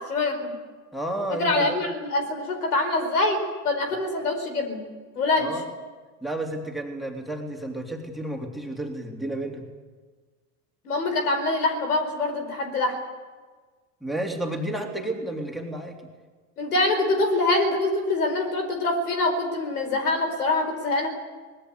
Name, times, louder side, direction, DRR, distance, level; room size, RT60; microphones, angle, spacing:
voice 1, 0.1-0.5 1.4-4.8 5.1-5.5 10.8-13.0 16.6-21.1, left 2 dB, 70° left, 6 dB, 4.8 m, -24 dB
voice 2, 0.9-1.8 5.4-5.6 6.2-9.7 14.0-16.0, right 1 dB, ahead, 2 dB, 3.6 m, -31 dB
24.0 x 20.5 x 8.3 m, 1.4 s
figure-of-eight pair, 75°, 47 cm